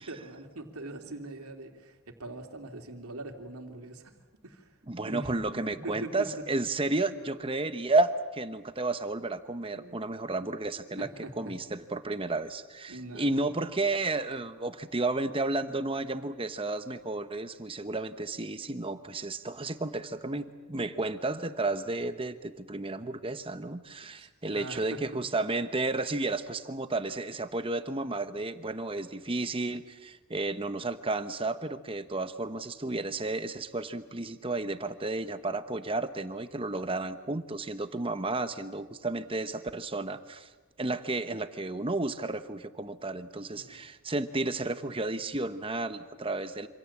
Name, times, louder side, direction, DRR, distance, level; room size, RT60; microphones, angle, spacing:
voice 1, 0.0-4.1 4.4-4.7 5.0-5.3 5.7-6.3 9.7-10.0 11.0-11.5 12.9-13.4 24.2-25.0 43.5-43.8, right 2 dB, 80° right, 4 dB, 3.1 m, -42 dB
voice 2, 4.9-11.1 11.4-40.5 40.8-46.7, right 2 dB, 25° right, 10 dB, 1.0 m, -32 dB
27.0 x 26.5 x 7.4 m, 1.2 s
head